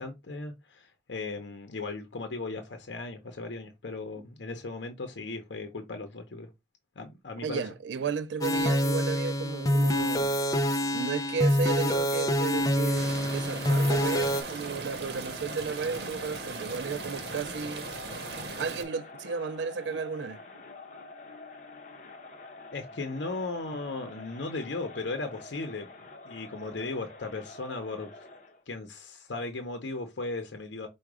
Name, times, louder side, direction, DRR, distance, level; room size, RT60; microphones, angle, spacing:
voice 1, 0.0-6.5 7.0-7.6 22.7-25.9 26.2-28.1 28.7-30.9, left 3 dB, 80° left, 0.7 m, -36 dB
voice 2, 7.4-10.4 10.9-17.9 18.6-20.4, right 5 dB, 75° right, 0.4 m, -33 dB
sound 1, 8.4-14.4, equal, 20° left, 0.5 m, -26 dB
Crowd, 12.4-28.6, left 3 dB, 40° left, 1.0 m, -47 dB
sound 2, 13.0-18.8, right 3 dB, 60° right, 0.9 m, -39 dB
4.8 x 2.3 x 4.7 m
head